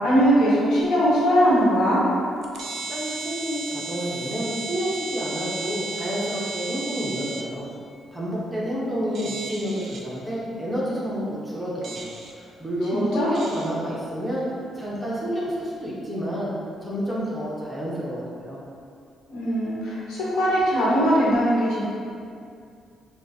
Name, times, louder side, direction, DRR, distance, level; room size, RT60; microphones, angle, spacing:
voice 1, 0.0-2.0 12.9-13.3 19.3-21.8, equal, 80° left, -7 dB, 1.3 m, -20 dB
sound 1, 0.8-0.9 1.8-1.9 2.4-7.4 9.1-10.0 11.8-12.3 13.4-13.7, right 3 dB, 60° right, 0.5 m, -34 dB
voice 2, 2.9-7.7 8.1-14.4 14.7-16.5 16.8-18.6, equal, 10° right, -7 dB, 1.0 m, -29 dB
6.2 x 2.4 x 2.8 m, 2.4 s
cardioid pair, 90°, 0 cm